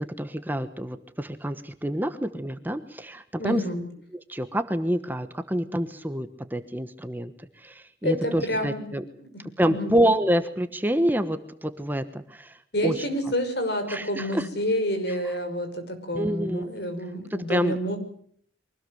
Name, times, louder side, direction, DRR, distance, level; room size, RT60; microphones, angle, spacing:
voice 1, 0.0-3.6 4.3-9.0 9.6-12.6 12.8-13.1 13.9-14.5 15.1-15.2 16.1-16.7 17.3-17.8, equal, 10° right, 9 dB, 1.1 m, -27 dB
voice 2, 3.4-3.9 8.0-9.9 12.7-18.0, equal, 65° left, 7 dB, 5.7 m, -29 dB
24.0 x 18.5 x 7.9 m, 0.63 s
head